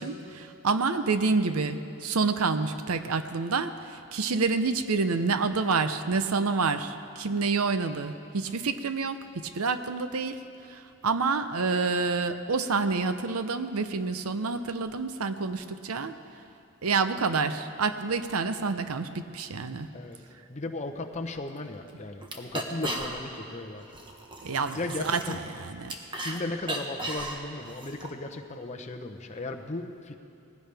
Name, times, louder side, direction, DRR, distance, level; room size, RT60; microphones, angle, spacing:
voice 1, 0.0-10.4 10.7-16.1 16.8-19.9 24.4-24.8 25.0-25.9, right 4 dB, 85° right, 10 dB, 0.7 m, -28 dB
voice 2, 20.5-23.8 24.7-25.4 26.2-30.1, left 2 dB, 30° left, 4 dB, 0.8 m, -36 dB
sound 1, 21.5-21.6 21.9-22.0 22.2-23.4 23.8-26.4 26.6-28.1, right 2 dB, 20° right, 1.0 m, -36 dB
19.0 x 16.0 x 3.5 m, 2.6 s
head